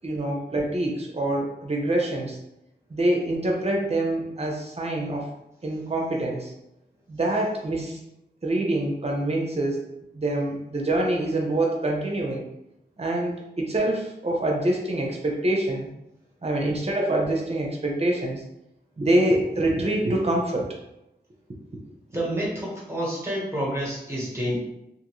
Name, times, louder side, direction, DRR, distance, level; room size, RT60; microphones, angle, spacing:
voice 1, 0.0-2.4 2.9-5.3 5.6-6.5 7.1-8.0 8.4-9.8 10.1-12.5 13.0-15.9 16.4-18.4 19.0-20.8, right 1 dB, 35° right, 0 dB, 0.7 m, -25 dB
voice 2, 22.1-24.6, right 1 dB, 15° right, -5 dB, 1.2 m, -28 dB
2.6 x 2.5 x 3.0 m, 0.86 s
wide cardioid pair, 70°, 18 cm